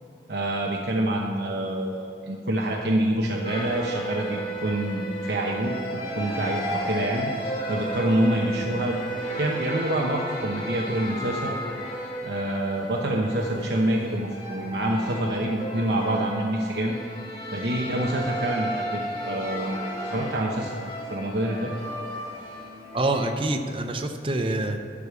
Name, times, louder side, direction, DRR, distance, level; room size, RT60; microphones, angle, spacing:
voice 1, 0.3-5.7 6.1-9.0 9.4-11.6 12.2-17.0 17.5-20.8 21.1-21.7, right 1 dB, 75° right, -1 dB, 0.9 m, -26 dB
sound 1, 3.4-23.3, right 1 dB, 25° left, 2.3 m, -33 dB
voice 2, 22.9-24.8, right 2 dB, 30° right, 5 dB, 0.6 m, -26 dB
12.5 x 5.0 x 8.2 m, 2.7 s
head